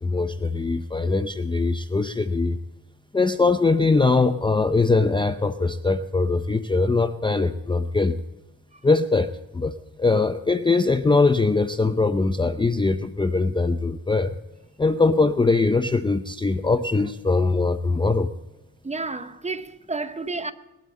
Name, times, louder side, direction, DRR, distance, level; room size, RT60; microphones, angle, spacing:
voice 1, 0.0-2.6 3.1-8.2 8.8-14.4 14.8-18.3, left 3 dB, 15° left, 0.5 m, -22 dB
voice 2, 18.8-20.5, right 3 dB, 20° right, 0.8 m, -31 dB
20.0 x 12.0 x 4.2 m
cardioid pair, 100°, 36 cm